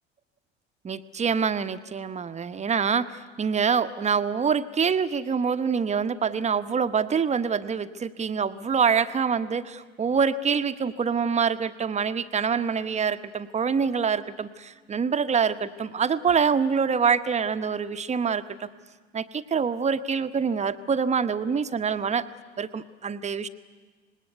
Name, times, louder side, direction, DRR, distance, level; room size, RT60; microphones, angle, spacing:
voice 1, 0.8-18.7 19.1-22.3 22.6-23.5, right 6 dB, 20° right, 11 dB, 1.1 m, -25 dB
26.0 x 20.5 x 8.1 m, 1.4 s
figure-of-eight pair, 65°, 31 cm